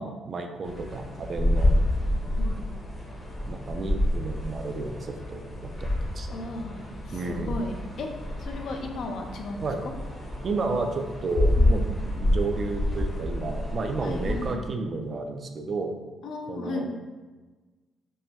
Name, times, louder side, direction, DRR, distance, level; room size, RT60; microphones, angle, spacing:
voice 1, 0.0-1.7 3.4-6.5 7.1-7.6 9.6-9.8 10.4-16.0 16.5-16.9, right 3 dB, 45° right, 5 dB, 0.3 m, -32 dB
sound 1, 0.6-14.5, left 1 dB, 30° left, 0.7 m, -28 dB
voice 2, 6.3-8.1 8.4-9.7 11.6-11.9 14.0-14.7 16.2-16.9, left 2 dB, 65° left, 4 dB, 0.4 m, -35 dB
4.1 x 2.1 x 2.2 m, 1.3 s
cardioid pair, 90°, 0 cm